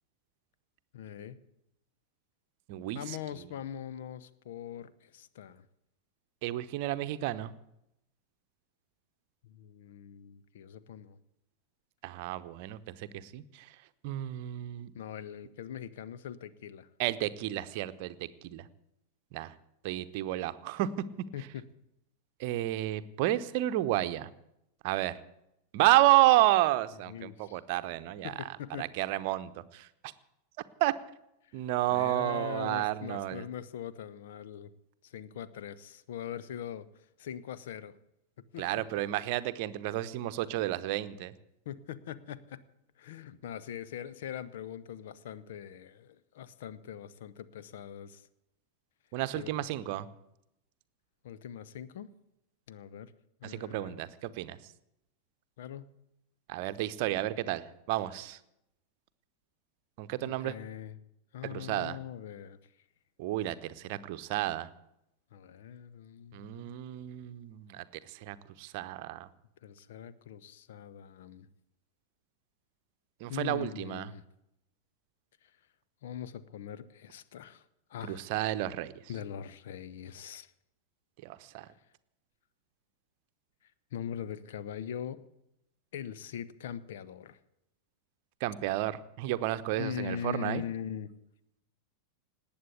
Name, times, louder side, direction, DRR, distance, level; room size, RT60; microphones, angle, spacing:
voice 1, 0.9-1.4 2.9-5.6 9.4-11.2 14.9-16.9 21.3-21.7 27.1-27.6 28.2-28.9 31.4-31.6 31.9-34.7 35.0-36.9 37.2-38.0 38.5-38.9 39.1-39.3 41.6-42.6 43.0-48.3 49.3-49.7 51.2-52.1 52.7-53.1 53.4-54.0 55.6-55.9 60.2-61.0 61.3-62.6 65.3-66.8 69.6-71.5 73.3-74.2 76.0-77.6 77.9-78.3 79.1-80.5 83.9-85.2 85.9-87.4 89.7-91.1, left 9 dB, 55° left, 15 dB, 0.9 m, -42 dB
voice 2, 2.7-3.2 6.4-7.5 12.0-13.7 14.0-14.9 17.0-18.6 19.3-19.5 19.8-20.9 22.4-24.3 24.8-25.1 25.7-28.3 28.8-29.9 30.8-30.9 31.5-33.4 38.6-41.3 49.1-50.1 53.4-54.6 56.5-58.4 60.0-60.5 61.5-62.0 63.2-64.7 66.3-69.3 73.2-74.1 78.0-78.9 81.2-81.7 88.4-90.6, right 15 dB, 45° right, 13 dB, 0.9 m, -31 dB
19.0 x 8.8 x 8.2 m, 0.82 s
figure-of-eight pair, 90°, 0 cm